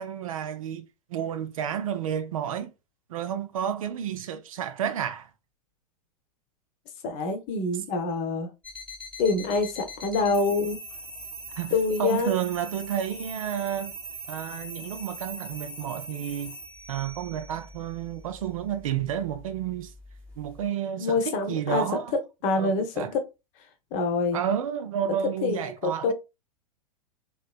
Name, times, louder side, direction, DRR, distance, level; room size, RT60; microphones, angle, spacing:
voice 1, 0.0-2.7 3.1-5.3 9.3-9.4 10.2-10.4 11.6-13.9 14.3-16.5 16.9-19.9 20.4-22.1 22.5-23.1 24.3-26.1, right 9 dB, 60° right, 0.4 m, -31 dB
voice 2, 7.0-8.5 9.2-10.8 11.7-12.3 21.0-21.8 22.4-23.2 23.9-24.4 25.4-26.1, left 3 dB, 35° left, 0.8 m, -26 dB
sound 1, 8.6-20.7, right 1 dB, 5° left, 0.9 m, -42 dB
3.0 x 3.0 x 2.2 m
figure-of-eight pair, 90°, 20 cm